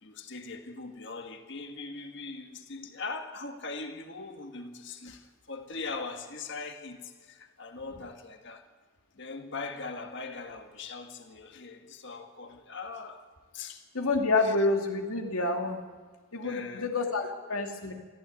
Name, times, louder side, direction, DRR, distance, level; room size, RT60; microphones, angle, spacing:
voice 1, 0.0-8.7 9.2-13.3 13.5-13.8 14.4-14.5 16.4-16.9 17.2-17.3, left 3 dB, 55° left, 1.7 m, -41 dB
voice 2, 13.9-15.8 16.3-17.9, left 3 dB, 80° left, 2.5 m, -28 dB
24.0 x 14.5 x 9.5 m
head